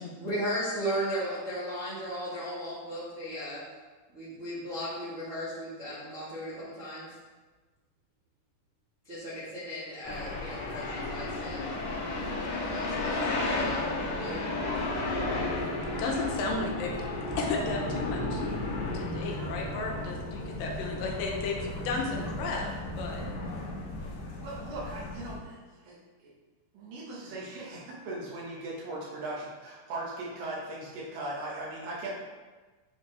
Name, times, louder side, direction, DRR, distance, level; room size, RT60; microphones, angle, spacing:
voice 1, 0.2-3.6 4.1-7.2 9.0-11.6 12.4-14.5, equal, 55° right, -11 dB, 0.8 m, -36 dB
sound 1, 10.0-25.3, left 2 dB, 35° left, 2.0 m, -33 dB
voice 2, 16.0-17.0 17.4-18.4 19.0-22.7 23.0-23.2, left 3 dB, 80° left, 0 dB, 2.4 m, -33 dB
voice 3, 24.4-26.3 26.7-32.1, right 2 dB, 75° right, -5 dB, 3.0 m, -39 dB
7.5 x 3.8 x 3.3 m, 1.3 s
omnidirectional pair, 4.1 m